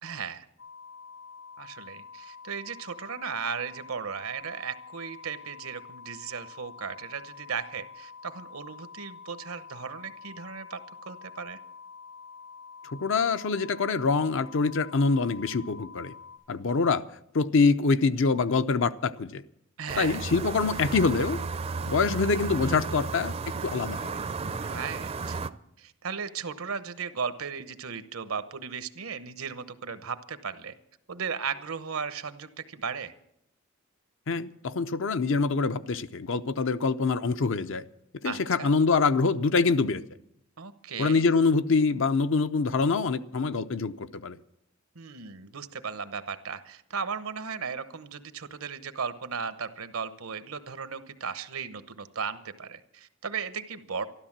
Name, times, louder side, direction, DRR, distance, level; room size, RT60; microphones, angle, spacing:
voice 1, 0.0-0.4 1.6-10.8 11.1-11.6 19.8-20.3 24.6-25.4 25.8-30.7 31.1-33.1 38.2-38.7 40.6-41.2 44.9-54.1, right 6 dB, 85° right, 12 dB, 1.0 m, -36 dB
sound 1, 0.6-16.4, left 5 dB, 80° left, 5.2 m, -47 dB
voice 2, 12.8-16.1 16.5-17.0 17.3-19.4 20.0-21.4 21.9-23.4 23.6-24.1 34.3-37.8 38.2-40.0 41.0-44.4, left 4 dB, 65° left, 12 dB, 0.6 m, -25 dB
sound 2, 19.9-25.5, right 4 dB, 30° right, 0.5 m, -33 dB
13.0 x 12.5 x 7.3 m, 0.75 s
head